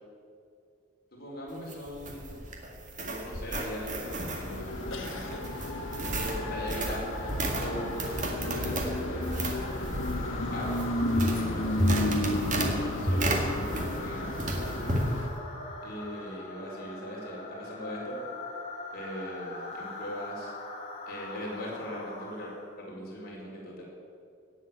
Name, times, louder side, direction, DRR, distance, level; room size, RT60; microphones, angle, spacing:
voice 1, 1.1-2.3 3.0-5.3 6.1-7.1 7.4-9.2 9.6-10.8 11.4-15.0 15.8-18.2 18.9-20.5 21.1-22.5 22.8-23.8, equal, 50° left, -4 dB, 4.9 m, -40 dB
sound 1, 1.5-14.1 14.4-15.1, right 1 dB, 40° right, 2.0 m, -32 dB
sound 2, 3.9-22.8, left 2 dB, 30° left, 2.6 m, -42 dB
sound 3, 4.0-15.3, left 1 dB, 75° left, 1.7 m, -33 dB
18.0 x 7.6 x 8.7 m, 2.4 s
head